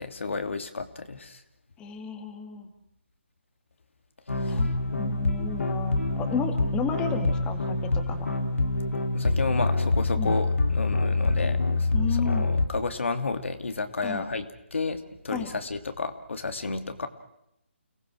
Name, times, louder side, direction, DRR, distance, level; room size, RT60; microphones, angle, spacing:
voice 1, 0.0-1.4 4.4-4.6 9.1-11.9 12.3-17.1, left 4 dB, 70° left, 7 dB, 2.6 m, -32 dB
voice 2, 1.8-2.7 4.5-4.7 5.0-8.3 10.2-10.3 11.9-12.5 14.0-14.3 15.3-15.5, left 6 dB, 10° left, 5 dB, 2.3 m, -33 dB
sound 1, 4.3-12.7, left 2 dB, 85° left, 3.0 m, -26 dB
30.0 x 19.0 x 6.4 m, 0.81 s
figure-of-eight pair, 155°, 7 cm